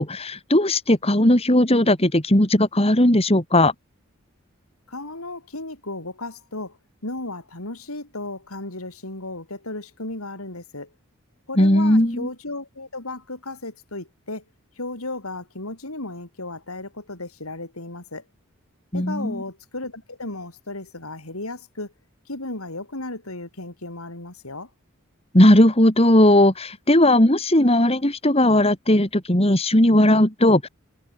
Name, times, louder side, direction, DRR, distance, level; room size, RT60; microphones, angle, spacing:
voice 1, 0.0-3.7 11.6-12.3 18.9-19.4 25.3-30.7, left 1 dB, 30° left, 3.1 m, -17 dB
voice 2, 4.9-6.8 7.0-10.9 11.5-14.4 14.8-18.2 18.9-21.9 22.3-24.7, left 2 dB, 90° left, 5.2 m, -34 dB
head